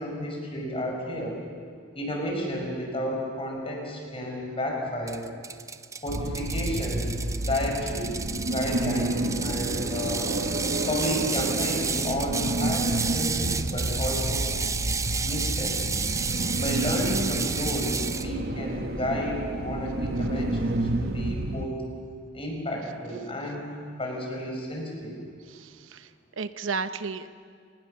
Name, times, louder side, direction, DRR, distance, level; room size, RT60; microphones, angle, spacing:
voice 1, 0.0-1.4 1.9-5.2 6.0-7.1 7.4-8.1 8.4-10.4 10.9-14.5 15.2-15.9 16.5-21.8 22.3-23.7 24.0-25.2, equal, 30° left, 0 dB, 6.1 m, -32 dB
Ratchet pawl, 5.1-18.3, right 5 dB, 15° right, 0.5 m, -31 dB
sound 1, 6.1-21.7, right 1 dB, 50° right, 1.1 m, -30 dB
voice 2, 25.5-26.1 26.4-27.3, right 5 dB, 75° right, 11 dB, 0.9 m, -33 dB
29.5 x 20.0 x 6.8 m, 2.1 s
head